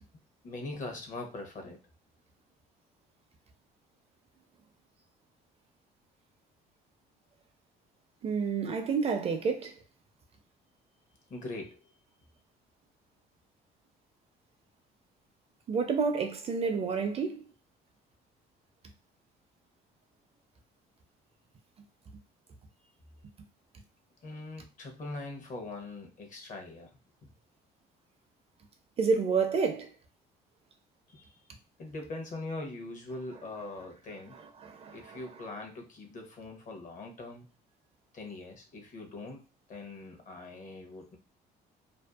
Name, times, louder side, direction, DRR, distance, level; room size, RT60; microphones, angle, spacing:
voice 1, 0.4-1.8 11.3-11.9 24.2-26.9 27.2-27.3 31.1-31.4 31.8-34.4 34.9-37.5 38.1-39.4 39.7-41.2, left 2 dB, 50° left, 0.8 m, -42 dB
voice 2, 8.2-9.7 15.7-17.4 29.0-29.9 34.6-35.2, right 5 dB, 35° right, 0.4 m, -29 dB
2.6 x 2.4 x 2.3 m
cardioid pair, 110°, 17 cm